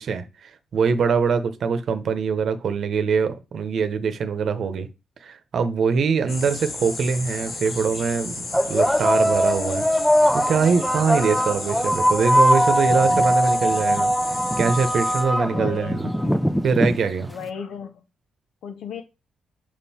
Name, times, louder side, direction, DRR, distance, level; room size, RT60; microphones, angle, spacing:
voice 1, 0.0-4.9 5.2-8.4 8.7-9.9 10.3-14.1 14.6-16.1 16.6-17.3, right 5 dB, 60° right, 0.9 m, -23 dB
sound 1, 6.3-15.2, left 3 dB, 60° left, 2.5 m, -33 dB
sound 2, 6.5-6.6 7.5-7.7 8.5-17.4, equal, 5° left, 0.5 m, -21 dB
voice 2, 11.0-11.4 15.5-16.3 17.3-18.0 18.6-19.0, left 7 dB, 80° left, 0.8 m, -35 dB
5.5 x 5.2 x 4.3 m
cardioid pair, 105°, 0 cm